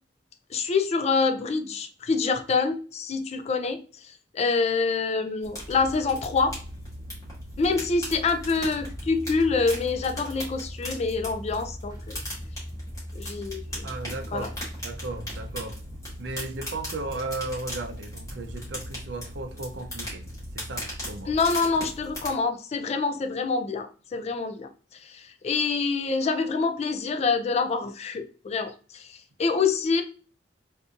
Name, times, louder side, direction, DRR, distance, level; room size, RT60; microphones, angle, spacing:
voice 1, 0.5-6.5 7.6-12.2 13.1-13.9 14.3-14.5 21.3-24.7 25.1-30.0, left 4 dB, 35° left, 0.3 m, -26 dB
sound 1, 5.4-22.3, equal, 20° left, 1.7 m, -39 dB
sound 2, 5.7-21.5, equal, 20° right, 0.6 m, -41 dB
voice 2, 13.8-14.5 14.8-15.8 16.2-20.2 20.5-21.3, right 2 dB, 75° right, 0.5 m, -35 dB
3.9 x 2.5 x 2.4 m
head